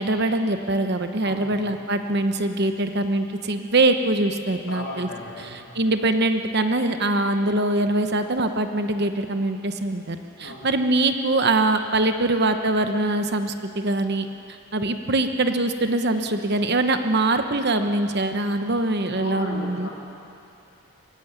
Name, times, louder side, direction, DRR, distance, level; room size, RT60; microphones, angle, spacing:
voice 1, 0.0-5.1 5.4-14.3 14.7-19.9, right 2 dB, 45° right, 7 dB, 1.1 m, -23 dB
voice 2, 1.2-1.6 4.7-5.6 10.4-10.7 19.1-19.9, left 1 dB, 65° left, -3 dB, 4.2 m, -35 dB
22.0 x 16.0 x 9.5 m, 2.6 s
head